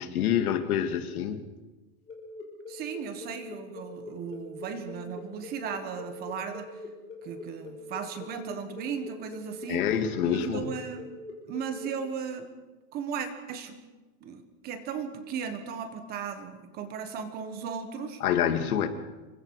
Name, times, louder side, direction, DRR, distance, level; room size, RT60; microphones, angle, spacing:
voice 1, 0.0-1.4 9.7-10.8 18.2-18.9, left 9 dB, 80° left, 7 dB, 2.3 m, -27 dB
sound 1, 2.1-11.9, left 3 dB, 15° left, 3.9 m, -43 dB
voice 2, 2.7-6.7 7.2-9.9 10.2-11.1 11.5-12.5 12.9-13.8 14.2-18.2, right 6 dB, 20° right, 9 dB, 1.4 m, -36 dB
27.5 x 23.5 x 4.9 m, 1.2 s
supercardioid pair, 180°, 43 cm